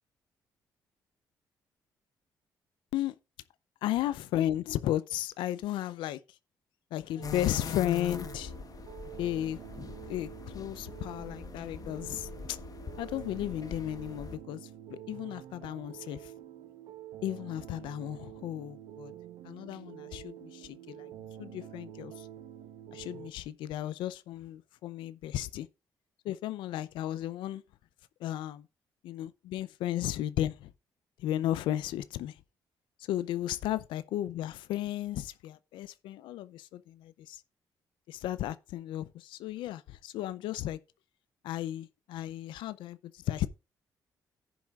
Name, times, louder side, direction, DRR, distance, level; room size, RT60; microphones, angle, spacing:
voice 1, 3.8-6.2 6.9-8.5 9.2-9.6 10.1-12.6 13.0-16.3 17.2-19.1 19.4-21.1 21.4-22.3 22.9-25.7 26.2-27.6 28.2-28.7 29.0-30.7 31.2-32.4 33.0-37.4 38.1-40.8 41.4-43.5, left 13 dB, 90° left, 0.5 m, -34 dB
sound 1, 7.2-14.4, left 6 dB, 50° left, 1.2 m, -42 dB
sound 2, 7.2-23.3, right 11 dB, 85° right, 0.9 m, -47 dB
15.0 x 7.2 x 2.4 m
cardioid pair, 70°, 8 cm